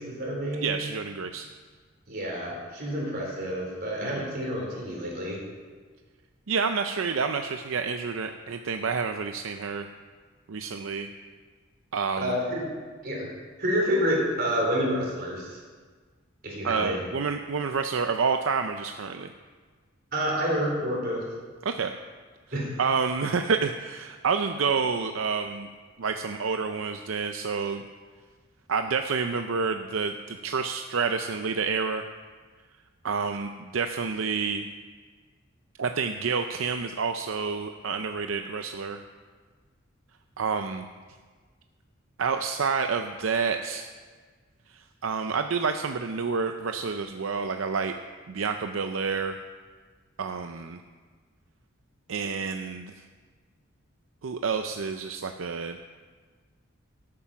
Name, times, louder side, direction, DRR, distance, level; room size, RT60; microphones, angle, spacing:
voice 1, 0.0-0.9 2.1-5.4 12.2-12.7 13.0-13.3 13.6-15.6 16.4-17.0 20.1-21.2 22.5-22.7, equal, 50° right, -2 dB, 3.7 m, -28 dB
voice 2, 0.6-1.5 4.0-4.1 6.5-9.9 10.5-11.1 11.9-12.4 16.6-19.3 21.6-21.9 22.8-25.7 26.0-27.8 28.7-32.0 33.0-34.7 35.8-39.0 40.4-40.9 42.2-43.9 45.0-47.9 48.3-49.4 50.2-50.8 52.1-52.9 54.2-55.8, right 5 dB, 80° right, 7 dB, 0.5 m, -28 dB
13.0 x 8.5 x 6.0 m, 1.5 s
head